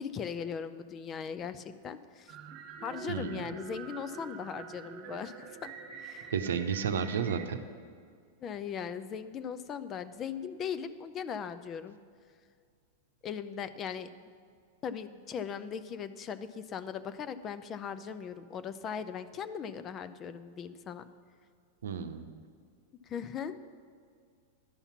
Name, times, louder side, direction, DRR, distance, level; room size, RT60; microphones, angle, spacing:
voice 1, 0.0-2.4 2.8-6.3 8.4-12.0 13.2-14.1 14.8-21.0 23.1-23.6, left 7 dB, 30° left, 12 dB, 0.5 m, -39 dB
sound 1, 2.3-7.5, right 6 dB, 45° right, 1.1 m, -45 dB
voice 2, 3.1-3.5 6.3-7.6 21.8-22.3, right 7 dB, 80° right, 7 dB, 0.7 m, -32 dB
11.5 x 5.6 x 7.1 m, 2.1 s
hypercardioid pair, 105°, 0 cm